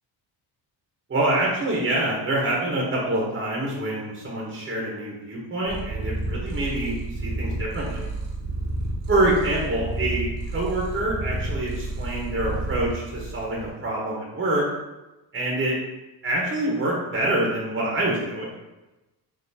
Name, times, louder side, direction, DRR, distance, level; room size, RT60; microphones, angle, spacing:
voice 1, 1.1-7.0 7.2-8.0 9.1-14.6 15.3-15.7 16.2-18.6, right 1 dB, 25° right, -3 dB, 1.0 m, -26 dB
Purr, 5.6-13.7, right 2 dB, 90° right, 1.4 m, -30 dB
5.5 x 2.7 x 2.8 m, 1.0 s
cardioid pair, 110°, 43 cm